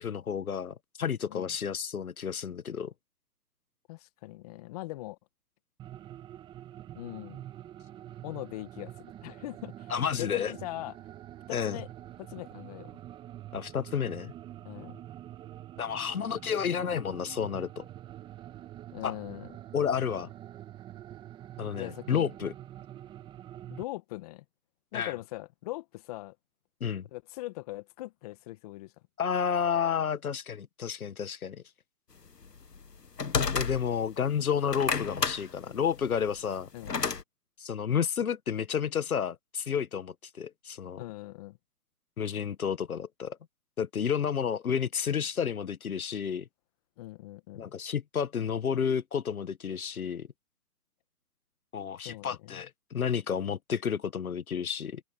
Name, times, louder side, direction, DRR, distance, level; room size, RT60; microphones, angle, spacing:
voice 1, 0.0-2.9 9.9-10.5 11.5-11.8 13.5-14.3 15.8-17.8 19.0-19.1 19.7-20.3 21.6-22.5 24.9-25.1 26.8-27.1 29.2-31.6 33.5-36.7 37.6-41.0 42.2-43.4 43.8-46.5 47.5-50.3 51.7-55.0, left 7 dB, 60° left, 1.5 m, -31 dB
voice 2, 3.9-5.2 6.9-7.4 8.2-8.9 9.2-9.9 10.2-10.9 11.5-11.9 12.2-12.9 14.6-15.0 18.9-19.5 21.7-22.3 23.7-24.4 24.9-26.3 27.1-28.9 36.7-37.0 41.0-41.6 47.0-47.7 52.0-52.6, left 18 dB, 25° left, 1.6 m, -41 dB
sound 1, 5.8-23.8, right 12 dB, 10° right, 1.6 m, -46 dB
sound 2, 32.4-34.1 34.6-37.2, left 5 dB, 90° left, 1.9 m, -31 dB
hypercardioid pair, 145°, 47 cm